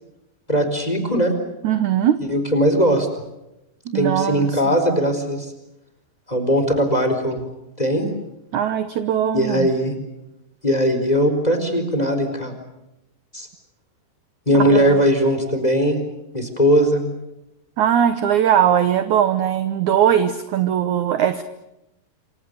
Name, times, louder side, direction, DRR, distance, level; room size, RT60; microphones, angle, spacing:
voice 1, 0.5-1.3 2.2-3.1 3.9-5.5 6.3-7.4 7.8-8.1 9.3-9.9 10.6-12.5 13.3-13.5 14.5-16.0 16.3-17.0, equal, 10° left, 7 dB, 3.9 m, -19 dB
voice 2, 1.6-2.2 3.9-4.6 8.5-9.7 14.6-14.9 17.8-21.4, right 9 dB, 70° right, 11 dB, 1.8 m, -20 dB
28.0 x 26.5 x 6.7 m, 0.91 s
omnidirectional pair, 4.9 m